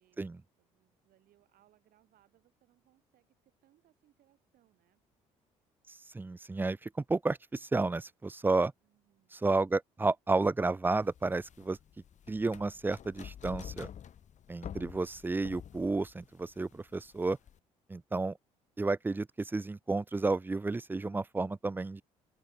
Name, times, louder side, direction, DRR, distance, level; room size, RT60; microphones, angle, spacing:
voice 1, 0.0-0.3 0.6-5.0 8.8-9.4, right 13 dB, 65° right, 6.4 m, -70 dB
voice 2, 6.1-8.7 9.3-11.8 12.3-13.9 14.5-17.4 17.9-18.4 18.8-22.0, right 3 dB, 15° right, 0.4 m, -31 dB
sound 1, 11.0-17.6, left 9 dB, 50° left, 1.0 m, -48 dB
open air
hypercardioid pair, 55°, 16 cm